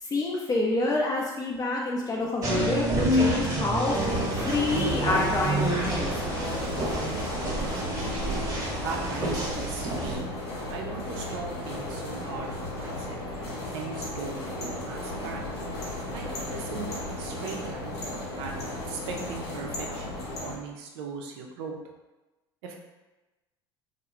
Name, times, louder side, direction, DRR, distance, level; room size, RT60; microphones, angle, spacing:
voice 1, 0.0-4.0 4.4-6.1, left 2 dB, 30° left, -2 dB, 0.5 m, -27 dB
sound 1, 2.4-10.2, right 1 dB, 25° right, 1.0 m, -28 dB
sound 2, 3.9-20.5, left 1 dB, 80° left, 0.7 m, -34 dB
voice 2, 8.8-10.3 10.7-15.5 16.1-18.0 18.3-21.8 22.6-22.8, right 4 dB, 65° right, 1 dB, 0.5 m, -39 dB
2.3 x 2.0 x 3.0 m, 1.1 s
hypercardioid pair, 70°, 14 cm